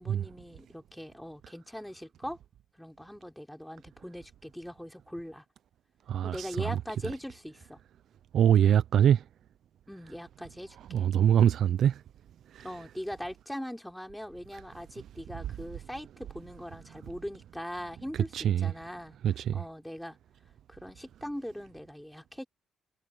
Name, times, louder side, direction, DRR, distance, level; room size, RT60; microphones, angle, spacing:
voice 1, 0.0-2.4 2.8-5.4 6.2-7.8 9.9-11.0 12.6-19.2 19.5-20.2 20.7-22.4, equal, 5° left, 4.3 m, -41 dB
voice 2, 6.1-6.7 8.3-9.2 10.9-12.0 12.5-12.6 18.3-18.7 19.2-19.6, right 9 dB, 70° right, 0.8 m, -24 dB
cardioid pair, 90°, 0 cm